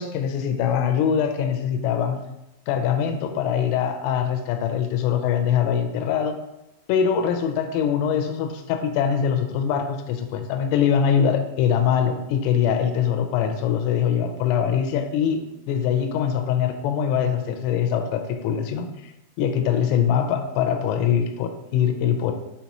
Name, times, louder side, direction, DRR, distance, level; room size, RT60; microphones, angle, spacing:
voice 1, 0.0-2.2 2.7-6.4 6.9-18.9 19.4-22.3, left 8 dB, 85° left, 6 dB, 3.2 m, -23 dB
9.1 x 4.0 x 2.9 m, 0.91 s
omnidirectional pair, 5.8 m